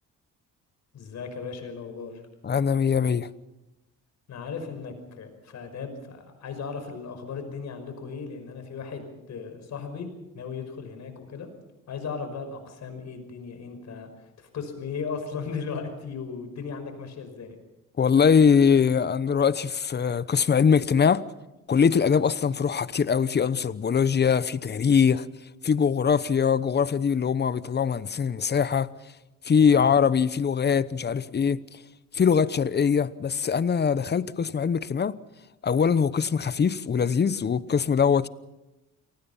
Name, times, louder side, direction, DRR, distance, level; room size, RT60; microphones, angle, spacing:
voice 1, 0.9-2.2 4.3-10.1 10.3-11.5 11.9-14.1 14.4-17.6 29.7-30.0, left 5 dB, 65° left, 5.8 m, -36 dB
voice 2, 2.4-3.3 18.0-21.2 21.7-25.3 25.6-28.9 29.4-31.8 32.1-35.1 35.6-38.3, left 6 dB, 35° left, 0.9 m, -22 dB
28.5 x 19.5 x 5.7 m
cardioid pair, 90°, 30 cm